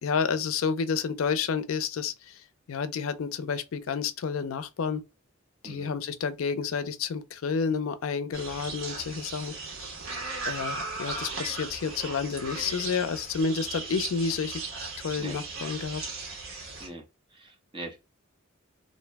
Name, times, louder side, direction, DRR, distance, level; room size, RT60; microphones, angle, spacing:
voice 1, 0.0-2.3 2.7-5.0 5.6-9.5 10.5-14.6 15.0-16.0, left 5 dB, 80° left, 0.4 m, -30 dB
sound 1, 8.3-16.9, right 3 dB, 75° right, 1.0 m, -37 dB
voice 2, 17.4-18.0, right 2 dB, 25° right, 0.8 m, -41 dB
2.6 x 2.1 x 3.3 m
head